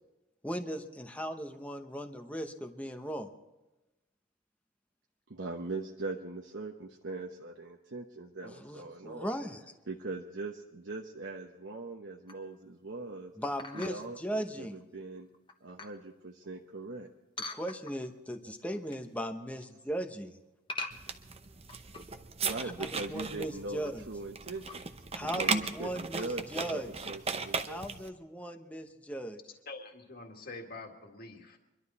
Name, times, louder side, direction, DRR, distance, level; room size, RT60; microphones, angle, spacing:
voice 1, 0.4-3.3 8.4-9.6 13.4-14.8 17.5-20.4 22.8-24.1 25.1-26.9 27.6-29.4, equal, 10° left, 5 dB, 0.9 m, -38 dB
voice 2, 5.3-9.3 9.9-13.3 13.7-15.3 15.6-17.1 22.4-24.8 25.1-27.8, right 3 dB, 70° right, 0 dB, 1.0 m, -41 dB
sound 1, 12.3-12.6 13.6-14.2 14.8-14.9 15.3-16.0 17.4-18.2 18.6-19.1 19.4-19.8 20.7-22.2 22.6-22.7 22.9-23.0 23.6-23.9 24.5-25.1 25.5-25.7, left 2 dB, 25° left, 1.2 m, -44 dB
sound 2, 20.9-28.1, right 4 dB, 30° right, 0.8 m, -37 dB
voice 3, 29.7-31.6, left 3 dB, 50° left, 3 dB, 2.0 m, -45 dB
24.5 x 12.0 x 4.2 m, 1.0 s
head